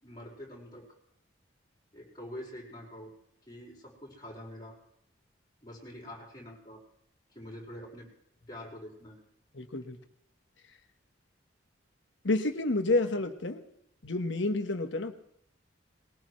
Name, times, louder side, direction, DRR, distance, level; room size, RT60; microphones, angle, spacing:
voice 1, 0.0-0.9 1.9-3.1 3.5-4.8 5.6-6.8 7.3-8.1 8.5-9.2, left 1 dB, 20° left, -4 dB, 4.9 m, -45 dB
voice 2, 9.6-10.0 12.2-13.6 14.0-15.1, left 2 dB, 65° left, 7 dB, 1.2 m, -29 dB
20.5 x 19.0 x 3.2 m, 0.73 s
head